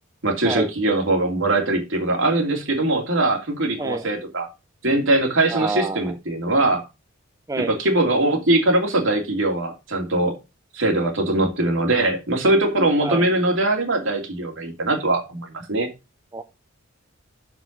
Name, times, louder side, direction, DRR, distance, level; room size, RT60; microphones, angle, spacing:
voice 1, 0.2-4.5 4.8-6.8 7.6-10.3 10.7-15.9, right 2 dB, 65° right, 2.8 m, -21 dB
voice 2, 5.5-6.1 7.5-7.7 13.0-13.3 16.3-16.4, right 3 dB, 15° right, 0.5 m, -27 dB
7.1 x 6.1 x 5.3 m
head